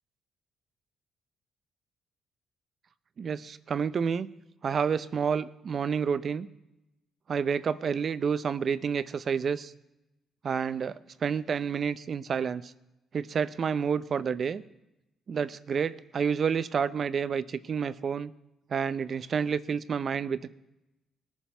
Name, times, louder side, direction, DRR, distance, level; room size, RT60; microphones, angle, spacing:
voice 1, 3.2-4.3 4.6-6.5 7.3-9.7 10.4-10.9 11.2-12.6 13.1-14.6 15.3-18.3 18.7-20.5, right 6 dB, 50° right, 14 dB, 0.6 m, -29 dB
21.0 x 7.2 x 4.5 m, 0.92 s
cardioid pair, 90°, 0 cm